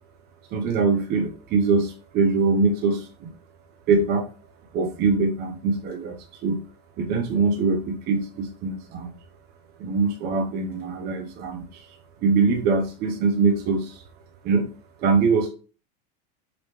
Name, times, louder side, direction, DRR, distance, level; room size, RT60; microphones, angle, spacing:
voice 1, 0.5-3.3 3.9-4.3 4.7-6.6 7.0-9.1 9.8-11.9 12.2-14.0 14.4-14.7 15.0-15.5, right 4 dB, 35° right, 4 dB, 0.6 m, -23 dB
4.9 x 3.0 x 3.4 m, 0.36 s
supercardioid pair, 145°, 29 cm